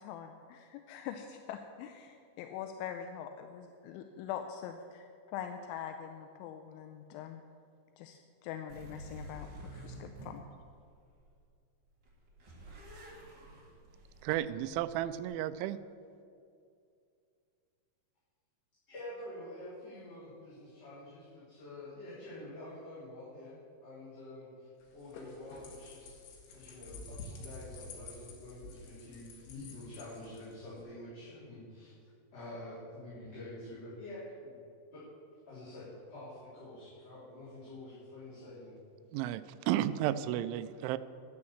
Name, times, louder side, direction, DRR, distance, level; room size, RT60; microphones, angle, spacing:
voice 1, 0.0-7.4 8.0-10.4, left 9 dB, 85° left, 6 dB, 3.0 m, -43 dB
sound 1, 8.7-11.4 11.9-15.2, right 1 dB, 40° right, 1.7 m, -50 dB
voice 2, 14.2-15.8 39.1-41.0, right 12 dB, 85° right, 13 dB, 2.9 m, -33 dB
voice 3, 18.9-23.6 23.8-24.7 24.9-26.2 26.5-31.9 32.3-34.5 34.9-35.0 35.5-38.7, left 1 dB, 35° left, -12 dB, 4.6 m, -47 dB
sound 2, 24.8-30.8, left 3 dB, 65° left, 3.6 m, -49 dB
11.0 x 9.7 x 7.2 m, 2.4 s
omnidirectional pair, 5.3 m